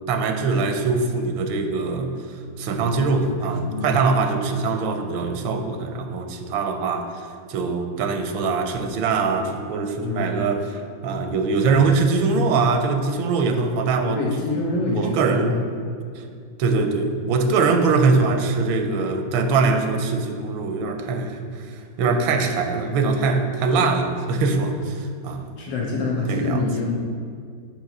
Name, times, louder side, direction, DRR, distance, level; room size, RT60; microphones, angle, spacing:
voice 1, 0.0-14.2 14.9-15.6 16.1-16.2 16.6-25.5 26.3-26.6, right 4 dB, 85° right, 5 dB, 1.4 m, -22 dB
voice 2, 3.6-4.0 10.0-10.3 14.1-15.5 25.6-26.9, left 3 dB, 80° left, -2 dB, 1.9 m, -25 dB
6.8 x 3.0 x 5.9 m, 2.2 s
omnidirectional pair, 2.1 m